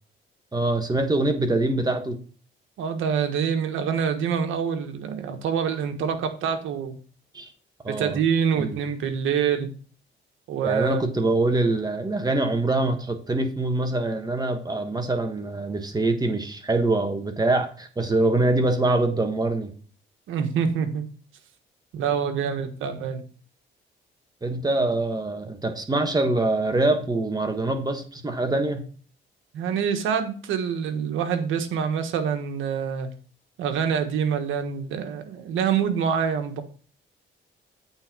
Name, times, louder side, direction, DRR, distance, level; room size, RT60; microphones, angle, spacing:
voice 1, 0.5-2.2 7.3-7.5 7.8-8.2 8.5-8.8 10.6-19.7 24.4-28.8, right 2 dB, 20° right, 1.4 m, -24 dB
voice 2, 2.8-6.9 7.9-9.7 10.5-11.1 20.3-21.1 21.9-23.2 29.5-33.1 33.6-36.6, right 7 dB, 85° right, 1.4 m, -26 dB
8.8 x 4.2 x 6.1 m
cardioid pair, 90°, 20 cm